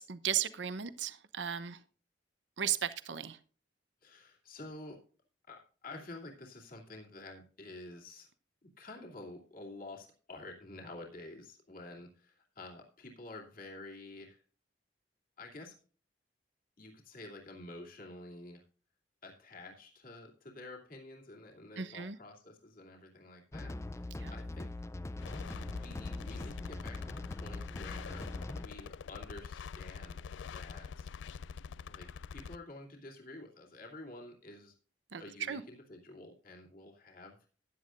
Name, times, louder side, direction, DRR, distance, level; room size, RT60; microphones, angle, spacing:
voice 1, 0.0-1.8 2.6-3.4 21.8-22.2 24.2-24.3 35.1-35.6, right 9 dB, 75° right, 13 dB, 0.8 m, -36 dB
voice 2, 4.0-5.0 5.5-8.3 8.6-14.4 15.4-15.7 16.8-18.6 19.2-24.7 25.0-28.3 28.6-31.1 31.9-34.7 35.2-37.4, left 2 dB, 50° left, 0 dB, 2.7 m, -50 dB
sound 1, 23.5-28.7, left 2 dB, 15° left, 0.4 m, -42 dB
sound 2, 25.2-32.6, left 6 dB, 85° left, 0.4 m, -45 dB
15.0 x 10.0 x 2.5 m, 0.40 s
head